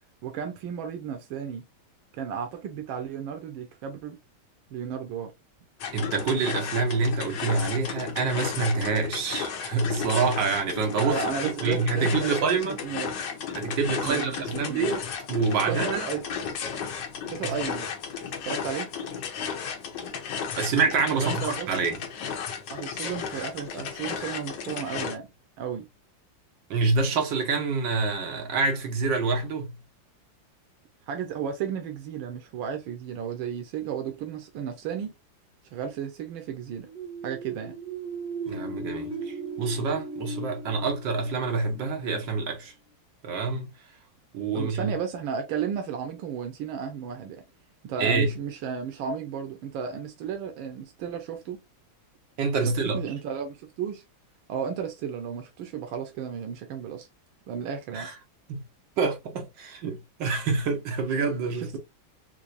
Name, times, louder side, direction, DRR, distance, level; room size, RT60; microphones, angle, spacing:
voice 1, 0.2-1.6 2.1-4.2 4.7-5.3 10.9-13.1 13.9-14.9 15.7-16.2 17.3-17.9 18.4-18.9 21.1-21.7 22.7-25.3 25.6-25.9 31.1-35.1 35.7-36.9 37.2-37.7 44.5-47.4 47.8-51.6 52.6-54.0 54.5-57.1 57.5-58.1 61.6-61.8, right 7 dB, 90° right, 1.5 m, -33 dB
sound 1, 5.8-25.2, left 7 dB, 75° left, 1.5 m, -34 dB
voice 2, 5.9-11.1 11.4-12.8 13.6-16.1 17.4-17.5 20.6-22.0 26.7-29.7 38.5-42.7 43.2-43.7 44.3-44.9 48.0-48.3 52.4-53.0 57.9-58.1 58.5-58.6 59.0-61.8, right 4 dB, 70° right, 1.7 m, -27 dB
sound 2, 36.8-42.4, right 3 dB, 5° right, 0.7 m, -37 dB
4.5 x 2.6 x 2.5 m
omnidirectional pair, 2.1 m